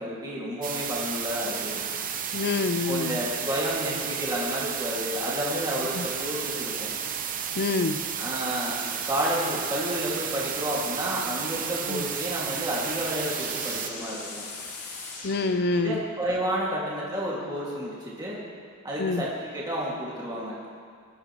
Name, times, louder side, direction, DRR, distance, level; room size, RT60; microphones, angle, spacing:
voice 1, 0.0-1.8 2.9-6.9 8.2-8.8 9.0-14.4 15.7-18.4 18.8-20.5, equal, 20° right, -7 dB, 2.1 m, -31 dB
sound 1, 0.6-13.9, right 7 dB, 40° right, 0.8 m, -32 dB
voice 2, 2.3-3.2 5.9-6.1 7.6-8.0 11.9-12.0 15.2-16.0 19.0-19.3, left 3 dB, 50° left, 11 dB, 0.6 m, -26 dB
sound 2, 12.0-16.3, left 3 dB, 85° left, 2.1 m, -42 dB
20.0 x 11.0 x 3.0 m, 2.1 s
head